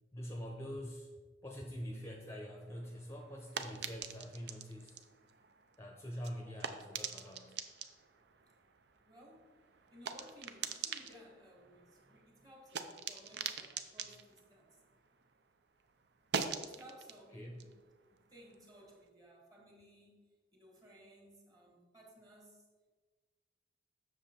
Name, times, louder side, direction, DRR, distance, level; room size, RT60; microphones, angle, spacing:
voice 1, 0.1-1.1 1.4-5.0 5.8-7.6 17.3-17.6, equal, 15° left, 1 dB, 0.7 m, -45 dB
sound 1, 2.7-15.5 15.8-19.0, right 6 dB, 65° right, 0.6 m, -45 dB
voice 2, 9.0-9.5 9.9-14.7 16.6-17.8 18.3-20.2 20.5-22.6, equal, 20° right, -1 dB, 1.7 m, -59 dB
7.6 x 6.3 x 4.3 m, 1.4 s
head